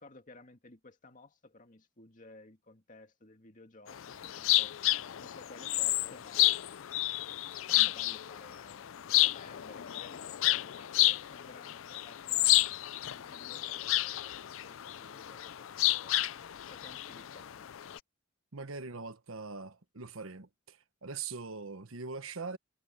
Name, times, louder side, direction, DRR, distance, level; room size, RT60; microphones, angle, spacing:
voice 1, 0.0-6.9 7.4-12.7 13.0-17.7, left 2 dB, 40° left, 2.2 m, -55 dB
sound 1, 3.9-18.0, left 17 dB, 65° left, 0.4 m, -31 dB
voice 2, 18.5-22.6, right 4 dB, 75° right, 1.2 m, -42 dB
head